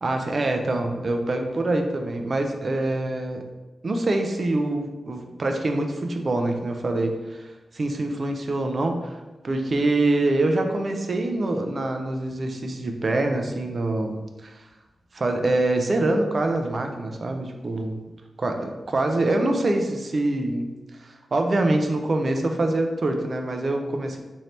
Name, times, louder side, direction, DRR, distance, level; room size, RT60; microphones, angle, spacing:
voice 1, 0.0-3.4 3.8-9.2 9.4-14.7 15.1-18.0 18.4-24.2, right 2 dB, 45° right, 4 dB, 0.4 m, -25 dB
3.2 x 2.7 x 4.1 m, 1.1 s
wide cardioid pair, 90°, 0 cm